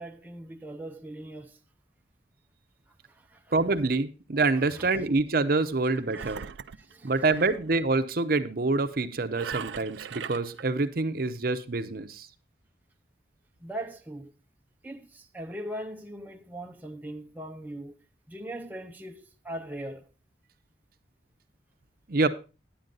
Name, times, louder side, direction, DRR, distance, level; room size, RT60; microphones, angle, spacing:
voice 1, 0.0-1.6 2.9-3.5 4.5-4.9 6.1-6.3 6.8-7.1 13.6-14.3 14.8-20.1, right 1 dB, 10° right, 0.6 m, -40 dB
voice 2, 3.5-6.4 7.0-12.3 22.1-22.3, right 3 dB, 55° right, 0.7 m, -26 dB
Engine, 6.1-7.6 9.3-10.6, right 7 dB, 85° right, 0.4 m, -39 dB
10.5 x 9.0 x 3.9 m
head